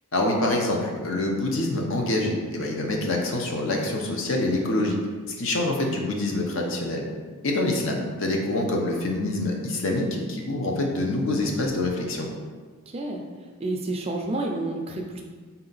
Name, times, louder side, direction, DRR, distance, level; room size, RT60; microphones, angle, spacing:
voice 1, 0.1-5.0 5.3-7.1 7.4-12.3, left 2 dB, 60° left, 1 dB, 0.7 m, -26 dB
voice 2, 12.9-13.2 13.6-15.2, right 2 dB, 30° right, 1 dB, 0.4 m, -29 dB
4.3 x 2.8 x 3.9 m, 1.5 s
head